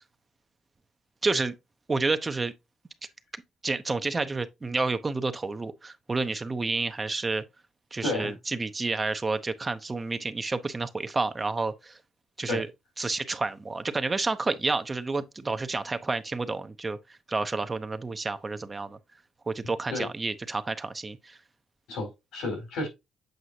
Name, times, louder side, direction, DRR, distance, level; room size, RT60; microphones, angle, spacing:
voice 1, 1.2-1.5 1.9-2.5 3.6-7.4 7.9-12.0 12.4-12.7 13.0-17.0 17.3-19.0 19.5-21.4, right 3 dB, 25° right, 0.7 m, -30 dB
voice 2, 8.0-8.3 12.5-12.6 19.9-20.1 21.9-22.9, left 2 dB, 90° left, 4.4 m, -31 dB
7.9 x 4.8 x 2.8 m
cardioid pair, 90°, 0 cm